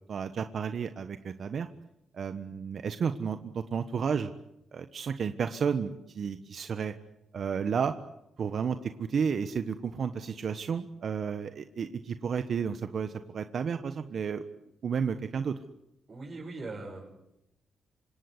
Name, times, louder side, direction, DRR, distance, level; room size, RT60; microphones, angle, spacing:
voice 1, 0.1-1.7 2.1-4.3 4.7-6.9 7.3-7.9 8.4-14.4 14.8-15.6, right 6 dB, 60° right, 9 dB, 1.2 m, -32 dB
voice 2, 16.1-17.1, right 3 dB, 40° right, -3 dB, 6.6 m, -40 dB
27.0 x 17.5 x 9.7 m, 0.87 s
cardioid pair, 80°, 0 cm